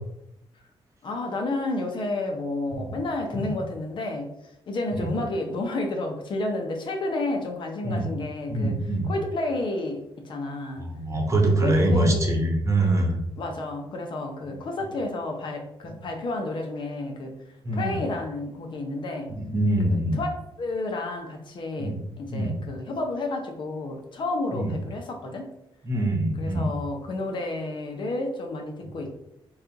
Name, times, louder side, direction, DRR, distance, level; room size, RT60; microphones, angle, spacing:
voice 1, 1.0-4.3 4.7-10.9 11.5-12.3 13.4-17.4 17.7-19.4 19.8-20.3 20.6-25.5 26.4-29.1, left 2 dB, 60° left, 3 dB, 0.7 m, -31 dB
voice 2, 8.5-9.1 10.8-13.2 17.6-18.0 19.5-20.2 21.8-22.0 22.3-22.5 24.5-24.7 25.8-26.7, right 1 dB, 30° right, 2 dB, 0.9 m, -24 dB
4.2 x 2.4 x 3.8 m, 0.82 s
cardioid pair, 110°, 9 cm